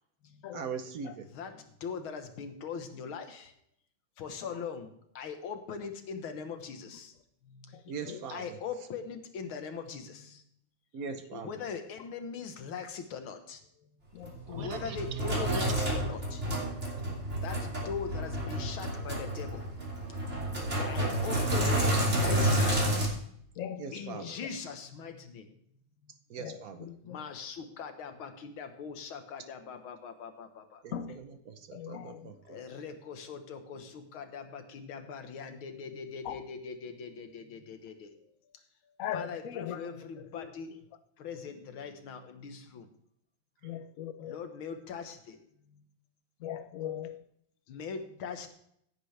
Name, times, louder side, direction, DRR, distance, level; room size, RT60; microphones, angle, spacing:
voice 1, 0.5-1.3 7.9-8.6 10.9-11.5 14.5-15.7 23.8-24.4 26.3-26.9 30.8-32.6, right 6 dB, 55° right, 1.1 m, -41 dB
voice 2, 1.3-3.5 4.2-7.1 7.4-7.8 8.3-10.4 11.4-13.9 14.5-16.5 17.4-19.7 20.9-22.9 23.9-25.5 26.0-26.2 27.0-30.8 32.5-38.1 38.8-40.7 41.2-42.9 43.6-43.9 44.2-45.9 47.7-48.5, left 6 dB, 85° left, 2.1 m, -41 dB
voice 3, 7.7-8.2 11.3-11.4 14.1-14.6 17.0-17.1 20.8-21.0 23.6-24.3 26.4-27.2 30.9-31.2 31.7-32.3 36.2-36.4 39.0-40.5 43.6-44.4 46.4-47.2, left 9 dB, 55° left, 0.9 m, -40 dB
Sink (filling or washing), 14.2-23.1, right 1 dB, 35° right, 3.3 m, -30 dB
16.0 x 9.3 x 3.3 m
omnidirectional pair, 2.2 m